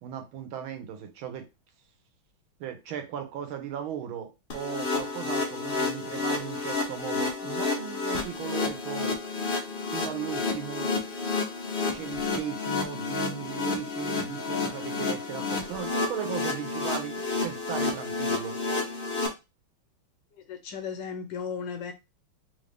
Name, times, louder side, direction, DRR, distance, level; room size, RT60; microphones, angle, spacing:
voice 1, 0.0-1.5 2.6-9.1 9.9-10.9 11.9-18.6, right 9 dB, 80° right, 1.5 m, -37 dB
sound 1, 4.5-19.3, left 3 dB, 90° left, 0.4 m, -30 dB
voice 2, 20.3-21.9, left 6 dB, 75° left, 1.1 m, -35 dB
3.6 x 2.6 x 3.3 m
omnidirectional pair, 2.3 m